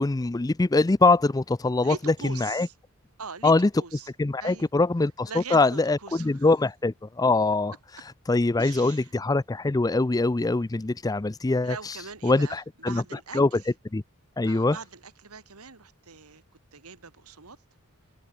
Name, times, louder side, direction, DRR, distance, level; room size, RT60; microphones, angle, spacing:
voice 1, 0.0-2.0 2.2-2.7 3.4-3.7 4.2-7.7 8.3-12.0 12.2-13.0 13.3-13.5 13.9-14.0 14.4-14.8, left 3 dB, 15° left, 0.4 m, -23 dB
voice 2, 1.8-2.7 3.2-4.1 4.4-4.7 5.3-6.5 8.6-9.1 11.6-13.7 14.4-16.4 16.7-17.6, right 5 dB, 85° right, 2.1 m, -42 dB
head